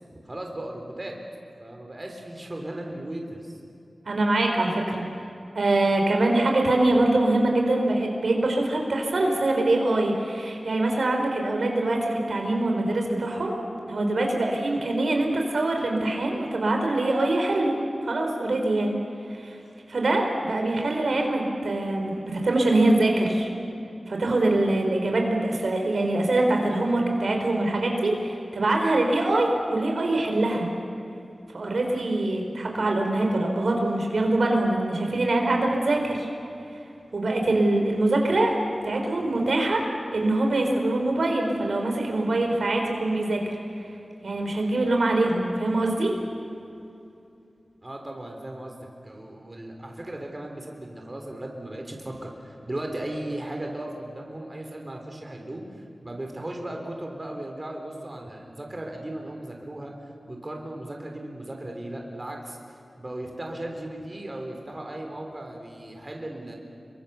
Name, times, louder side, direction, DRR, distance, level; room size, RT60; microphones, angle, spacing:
voice 1, 0.2-1.1 1.6-3.5 47.8-59.9 60.3-66.6, right 1 dB, 30° right, 1 dB, 3.8 m, -36 dB
voice 2, 4.1-5.0 5.5-13.6 13.9-17.7 18.0-18.9 19.3-19.6 19.9-23.5 24.1-30.7 31.5-36.3 37.1-38.6 38.8-39.8 40.1-43.4 44.2-46.1, right 2 dB, 75° right, 2 dB, 4.1 m, -24 dB
29.5 x 23.5 x 7.0 m, 2.7 s
wide cardioid pair, 90°, 0 cm